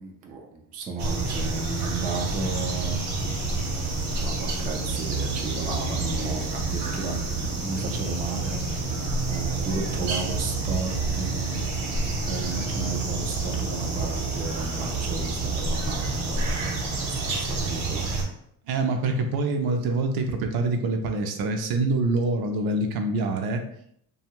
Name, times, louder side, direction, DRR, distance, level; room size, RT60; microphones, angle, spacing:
voice 1, 0.0-18.1, right 4 dB, 20° right, 1 dB, 0.3 m, -34 dB
sound 1, 1.0-18.2, right 3 dB, 80° right, 1.0 m, -28 dB
voice 2, 18.7-23.6, right 3 dB, 60° right, 4 dB, 0.6 m, -25 dB
2.6 x 2.4 x 2.9 m, 0.69 s
cardioid pair, 115°, 42 cm